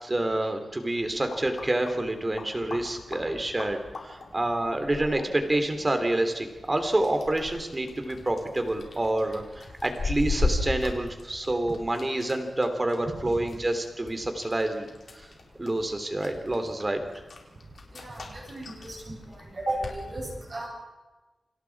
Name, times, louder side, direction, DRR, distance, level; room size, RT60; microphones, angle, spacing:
voice 1, 0.0-14.9 15.1-15.3 15.6-17.0, right 1 dB, 20° right, 6 dB, 3.3 m, -28 dB
sound 1, 0.8-20.0, left 2 dB, 65° left, 4.4 m, -38 dB
voice 2, 17.9-19.2 19.5-20.7, right 1 dB, 40° right, -3 dB, 8.0 m, -34 dB
29.0 x 26.5 x 4.8 m, 1.2 s
wide cardioid pair, 135°, 0 cm